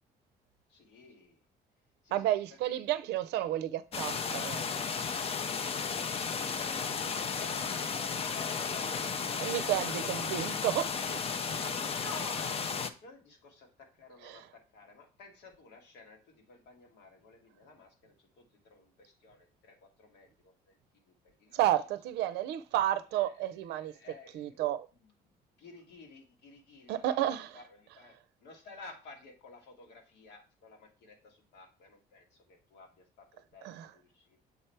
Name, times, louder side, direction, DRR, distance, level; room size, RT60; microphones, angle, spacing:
voice 1, 0.7-1.4 2.0-2.4 2.7-2.8 6.3-10.5 12.0-20.7 21.0-21.7 23.1-23.4 23.7-24.6 24.9-25.1 25.6-34.4, left 4 dB, 80° left, 1.7 m, -52 dB
voice 2, 2.1-4.6 9.4-11.2 14.2-14.4 21.5-23.9 24.3-24.9 26.9-27.6 33.6-33.9, right 13 dB, 85° right, 0.5 m, -31 dB
sound 1, 3.9-12.9, left 5 dB, 35° left, 0.5 m, -34 dB
7.1 x 3.3 x 4.4 m
cardioid pair, 110°, 17 cm